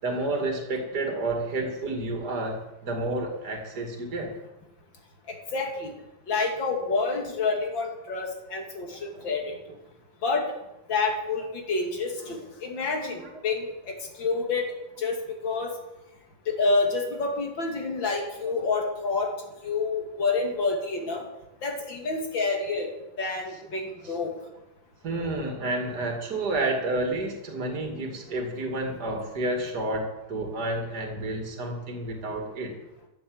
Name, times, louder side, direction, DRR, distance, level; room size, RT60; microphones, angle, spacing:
voice 1, 0.0-4.3 9.1-9.3 12.7-12.8 13.1-13.3 24.0-24.2 25.0-32.7, right 2 dB, 55° right, 2 dB, 2.9 m, -30 dB
voice 2, 5.3-5.9 6.3-9.5 10.2-10.5 10.9-14.7 15.0-15.2 15.4-15.7 16.5-19.3 19.6-21.2 21.6-22.9 23.2-24.3, left 3 dB, 75° left, 2 dB, 3.3 m, -28 dB
14.0 x 9.5 x 7.8 m, 0.94 s
omnidirectional pair, 2.1 m